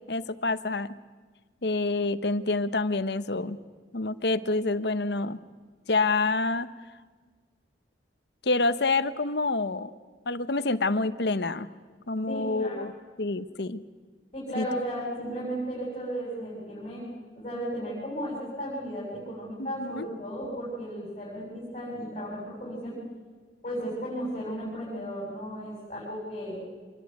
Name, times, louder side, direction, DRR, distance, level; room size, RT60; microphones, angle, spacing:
voice 1, 0.1-1.0 1.6-3.6 3.9-5.4 5.9-6.7 8.4-9.9 10.3-11.7 12.1-12.9 13.2-13.8 14.5-14.7 19.6-20.1, left 3 dB, 65° left, 13 dB, 1.1 m, -27 dB
voice 2, 12.3-12.9 14.3-17.0 17.4-23.0 23.6-26.6, equal, 35° left, -5 dB, 7.8 m, -35 dB
26.0 x 22.0 x 9.5 m, 1.5 s
head